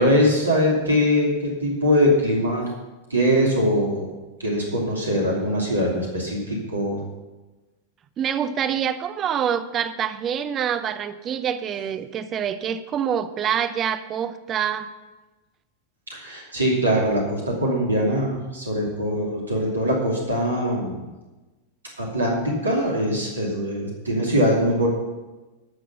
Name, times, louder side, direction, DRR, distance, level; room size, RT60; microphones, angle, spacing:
voice 1, 0.0-2.7 3.1-4.1 4.4-7.0 16.1-21.1 22.0-24.9, equal, 75° right, -2 dB, 2.7 m, -22 dB
voice 2, 8.2-14.9, right 8 dB, 30° right, 11 dB, 0.8 m, -26 dB
13.0 x 6.3 x 6.8 m, 1.1 s
figure-of-eight pair, 90°, 0 cm